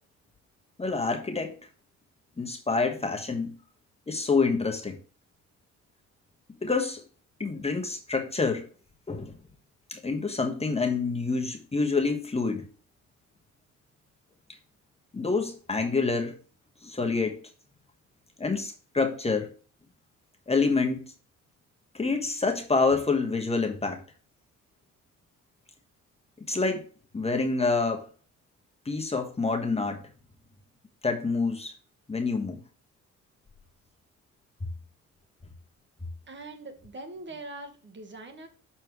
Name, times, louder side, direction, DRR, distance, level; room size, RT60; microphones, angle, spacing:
voice 1, 0.8-1.6 2.4-3.5 4.1-5.0 6.6-7.0 7.4-8.7 9.1-9.3 9.9-12.7 15.1-16.4 16.8-17.4 18.4-19.5 20.5-21.1 21.9-24.0 26.5-26.8 27.1-28.1 28.8-30.0 31.0-31.7 32.1-32.6, left 4 dB, 20° left, 1.2 m, -27 dB
voice 2, 36.3-38.5, right 2 dB, 40° right, 1.4 m, -42 dB
6.7 x 4.3 x 4.7 m
cardioid pair, 90°, 30 cm